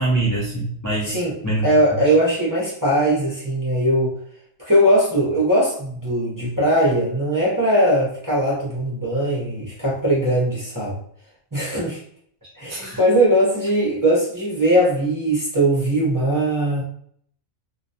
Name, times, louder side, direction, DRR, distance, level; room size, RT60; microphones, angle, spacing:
voice 1, 0.0-1.2 1.4-2.0 12.7-13.0, right 2 dB, 20° left, -6 dB, 0.4 m, -24 dB
voice 2, 1.0-1.4 1.6-4.2 4.6-11.0 11.5-12.0 12.6-16.8, right 1 dB, 20° right, -7 dB, 0.6 m, -20 dB
2.3 x 2.2 x 2.7 m, 0.63 s
omnidirectional pair, 1.2 m